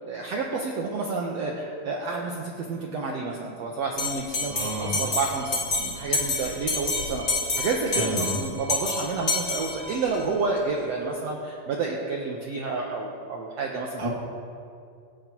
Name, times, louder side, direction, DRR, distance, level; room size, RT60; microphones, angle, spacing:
voice 1, 0.0-7.2 7.6-14.0, right 4 dB, 90° right, -1 dB, 1.4 m, -30 dB
Bell, 4.0-10.2, left 3 dB, 50° left, 0.9 m, -29 dB
voice 2, 4.5-5.0 6.3-6.5 7.9-8.4 14.0-14.1, right 1 dB, 25° right, -3 dB, 0.8 m, -31 dB
26.5 x 8.9 x 3.0 m, 2.4 s
omnidirectional pair, 4.4 m